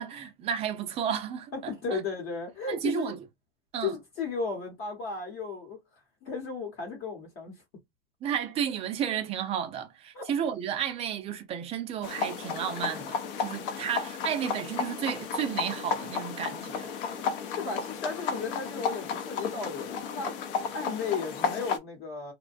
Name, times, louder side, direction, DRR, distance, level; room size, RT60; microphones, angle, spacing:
voice 1, 0.0-2.0 2.7-3.2 3.7-3.9 8.2-16.9, right 8 dB, 20° right, 0.4 m, -32 dB
voice 2, 1.7-3.1 3.8-5.8 6.2-7.6 10.1-10.3 17.4-20.3 20.7-22.3, left 5 dB, 40° left, 1.0 m, -34 dB
trotting horse in rural road, 12.0-21.8, left 6 dB, 60° left, 0.7 m, -33 dB
2.6 x 2.2 x 2.4 m
supercardioid pair, 140°, 31 cm